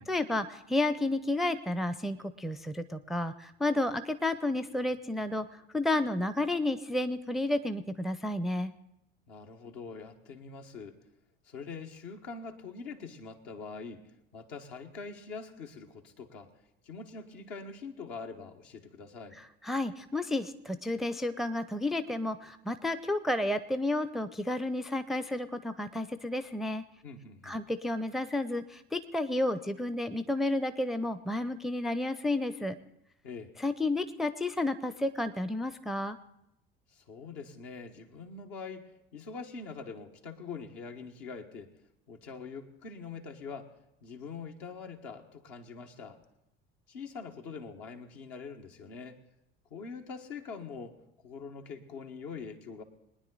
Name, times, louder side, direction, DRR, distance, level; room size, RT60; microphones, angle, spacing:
voice 1, 0.1-5.5 5.7-8.7 19.6-26.8 27.4-32.8 33.6-36.2, left 2 dB, ahead, 11 dB, 0.5 m, -31 dB
voice 2, 9.3-11.0 11.4-16.5 16.8-19.4 27.0-27.6 33.2-33.5 36.9-41.7 42.1-43.7 44.0-46.2 46.9-49.2 49.7-51.0 51.2-52.8, left 5 dB, 65° left, 3 dB, 1.5 m, -44 dB
22.0 x 10.0 x 3.9 m, 0.82 s
figure-of-eight pair, 60°, 30 cm